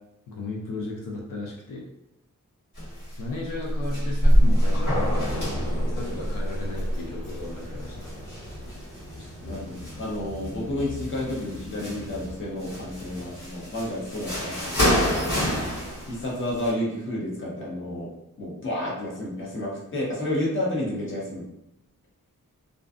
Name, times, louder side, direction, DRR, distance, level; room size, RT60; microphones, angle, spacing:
voice 1, 0.3-1.8 3.2-8.1, left 3 dB, 90° left, -1 dB, 0.6 m, -35 dB
sound 1, 2.8-3.2 3.5-9.0 9.5-10.5 10.8-12.2 12.6-16.7, equal, 70° left, 1.4 m, -26 dB
sound 2, 5.3-13.4, left 1 dB, 10° left, 1.1 m, -40 dB
voice 2, 9.4-15.3 16.1-18.1 18.4-21.4, left 1 dB, 40° left, -4 dB, 0.8 m, -31 dB
2.5 x 2.2 x 2.4 m, 0.85 s
wide cardioid pair, 160°, 32 cm